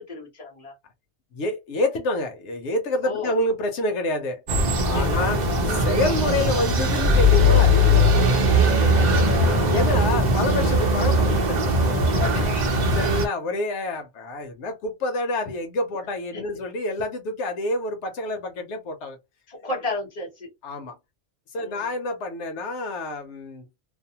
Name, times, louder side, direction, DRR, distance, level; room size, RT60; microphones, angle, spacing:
voice 1, 0.1-0.7 3.0-3.3 4.9-5.2 8.7-9.6 12.1-12.5 16.3-16.6 19.5-20.5 21.5-21.9, left 2 dB, 35° left, 1.3 m, -33 dB
voice 2, 1.3-4.4 4.8-5.4 5.6-8.1 9.1-9.2 9.5-11.7 12.3-12.5 12.9-19.2 20.6-20.9 21.5-23.6, left 2 dB, 85° left, 1.0 m, -28 dB
sound 1, 4.5-13.3, left 1 dB, 45° right, 0.7 m, -20 dB
2.6 x 2.0 x 2.8 m
omnidirectional pair, 1.2 m